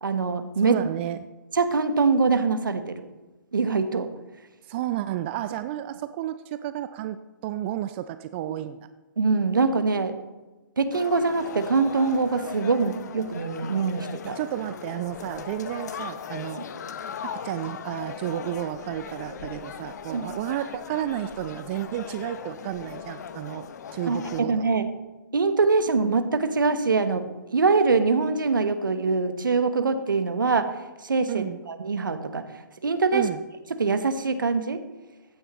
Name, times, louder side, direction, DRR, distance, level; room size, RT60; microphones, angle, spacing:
voice 1, 0.0-0.8 1.5-3.0 3.5-4.1 8.5-8.6 9.2-10.1 10.8-14.4 20.1-20.2 24.1-24.9 25.3-30.7 31.0-32.4 32.8-33.3 33.8-34.8, right 4 dB, 75° right, 10 dB, 1.1 m, -23 dB
voice 2, 0.6-1.3 4.7-8.9 14.2-16.6 17.2-23.7 23.9-24.7 31.3-31.6 33.1-33.4, right 12 dB, 35° right, 12 dB, 0.4 m, -32 dB
sound 1, 10.9-24.4, left 7 dB, 55° left, 0.8 m, -38 dB
15.0 x 10.0 x 3.0 m, 1.2 s
figure-of-eight pair, 125°, 11 cm